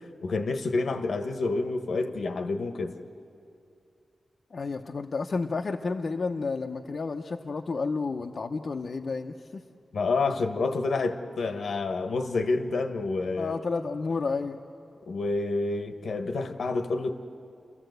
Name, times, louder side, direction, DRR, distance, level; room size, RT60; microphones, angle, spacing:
voice 1, 0.2-3.0 9.9-13.5 15.1-17.1, left 3 dB, 90° left, 6 dB, 1.2 m, -28 dB
voice 2, 4.5-9.6 13.4-14.6, left 4 dB, 55° left, 3 dB, 0.7 m, -31 dB
29.5 x 14.5 x 8.0 m, 2.5 s
wide cardioid pair, 145°, 0 cm